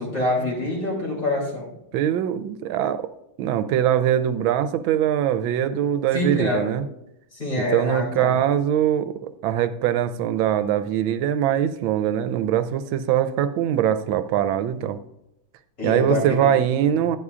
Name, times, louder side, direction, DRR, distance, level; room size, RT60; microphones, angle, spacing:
voice 1, 0.0-1.7 6.1-6.8 7.3-8.4 15.8-16.5 16.9-17.0, left 2 dB, 40° left, -4 dB, 3.7 m, -26 dB
voice 2, 1.9-3.1 3.4-6.8 7.6-15.0 15.8-17.2, right 10 dB, 80° right, 10 dB, 1.4 m, -22 dB
11.0 x 9.9 x 2.4 m, 0.84 s
omnidirectional pair, 2.2 m